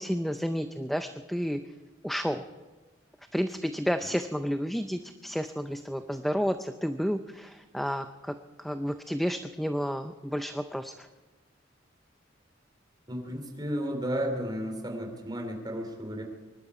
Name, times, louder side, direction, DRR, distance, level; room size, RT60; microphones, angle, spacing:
voice 1, 0.0-1.6 2.0-2.4 3.3-11.1, equal, ahead, 8 dB, 0.5 m, -31 dB
voice 2, 13.1-16.2, equal, 20° right, 3 dB, 3.0 m, -33 dB
24.5 x 12.0 x 4.9 m, 1.3 s
head